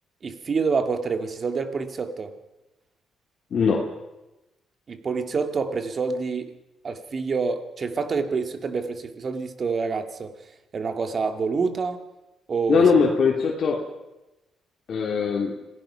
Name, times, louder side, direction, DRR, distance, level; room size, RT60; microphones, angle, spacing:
voice 1, 0.2-2.3 4.9-6.5 6.8-10.3 10.7-12.0 12.5-12.9, right 4 dB, 45° right, 7 dB, 2.3 m, -27 dB
voice 2, 3.5-3.8 12.7-13.8 14.9-15.5, left 5 dB, 55° left, 0 dB, 2.7 m, -20 dB
26.5 x 17.0 x 5.8 m, 1.0 s
cardioid pair, 90°, 0 cm